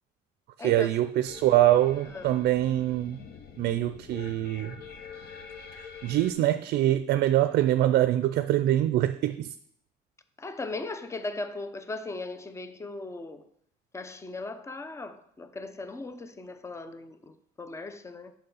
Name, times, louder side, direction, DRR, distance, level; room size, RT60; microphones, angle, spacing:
voice 1, 0.6-3.2 3.6-4.8 6.0-9.5, right 13 dB, 70° right, 0.4 m, -24 dB
sound 1, 1.2-6.3, left 6 dB, 65° left, 1.1 m, -45 dB
voice 2, 10.4-13.5 13.9-18.3, left 3 dB, 15° left, 0.6 m, -38 dB
6.7 x 5.6 x 5.6 m
cardioid pair, 110°, 17 cm